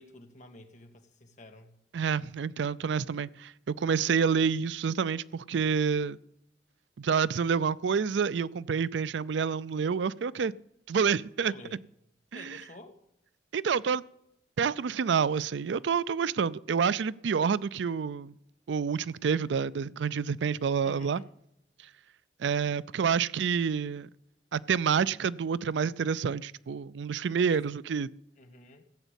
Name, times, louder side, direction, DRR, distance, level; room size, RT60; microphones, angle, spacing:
voice 1, 0.0-1.8 11.4-11.8 12.3-13.0 20.8-21.3 27.5-27.7 28.4-28.8, left 2 dB, 40° left, 1.6 m, -50 dB
voice 2, 1.9-6.2 7.0-10.5 10.9-11.5 12.3-12.6 13.5-14.0 14.6-18.3 18.7-21.2 22.4-24.1 24.5-28.1, right 6 dB, 75° right, 0.4 m, -28 dB
15.0 x 8.0 x 8.1 m
head